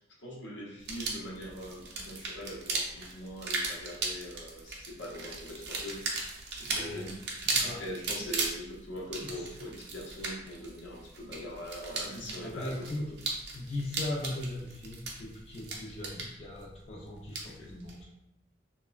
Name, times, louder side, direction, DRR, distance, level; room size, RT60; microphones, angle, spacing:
voice 1, 0.0-6.1 6.6-13.2 17.5-17.8, equal, 85° left, -3 dB, 0.7 m, -42 dB
sound 1, 0.8-18.0, right 3 dB, 60° right, 0.5 m, -37 dB
voice 2, 7.5-7.8 9.2-9.5 12.4-13.0 13.5-18.0, left 1 dB, 35° left, -3 dB, 0.4 m, -39 dB
3.1 x 2.1 x 2.2 m, 0.85 s
head